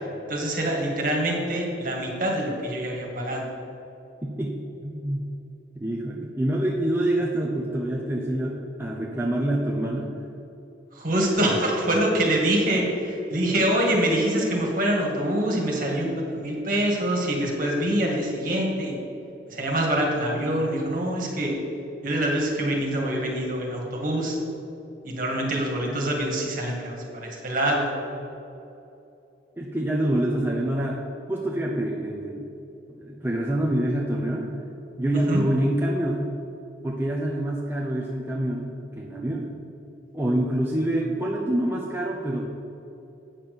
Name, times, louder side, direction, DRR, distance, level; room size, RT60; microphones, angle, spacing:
voice 1, 0.3-3.5 10.9-18.9 19.5-21.5 22.0-24.4 25.0-27.9 35.1-35.4, right 1 dB, 45° right, -1 dB, 2.1 m, -25 dB
voice 2, 4.2-4.6 4.8-5.2 5.7-10.2 13.3-13.5 29.6-32.5 33.0-34.5 35.0-36.3 36.8-39.5 40.1-42.5, right 1 dB, 10° right, -3 dB, 0.8 m, -26 dB
8.8 x 6.1 x 6.8 m, 2.9 s
head